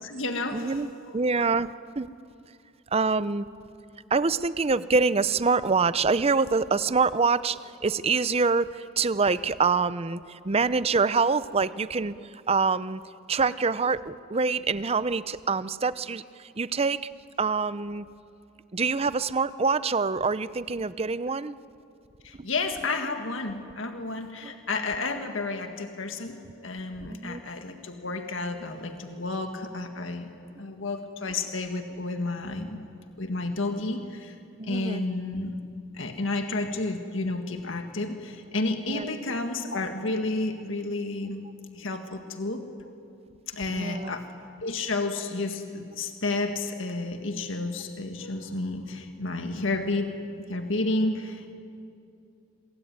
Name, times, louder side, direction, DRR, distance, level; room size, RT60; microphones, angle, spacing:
voice 1, 0.0-1.2 22.2-26.4 26.6-30.3 30.6-32.8 33.2-34.4 34.6-35.5 35.9-41.4 41.7-42.6 43.5-44.2 44.6-50.1 50.5-51.5, left 2 dB, 65° left, 5 dB, 1.8 m, -31 dB
voice 2, 0.5-1.7 2.0-2.1 2.9-3.5 4.1-12.1 12.5-13.0 13.3-17.0 17.4-18.1 18.7-21.6 22.4-22.5 24.4-24.5 27.1-27.4 34.6-35.0 38.9-39.1 43.7-44.1, right 4 dB, 30° right, 15 dB, 0.6 m, -25 dB
26.0 x 22.0 x 9.5 m, 2.6 s
head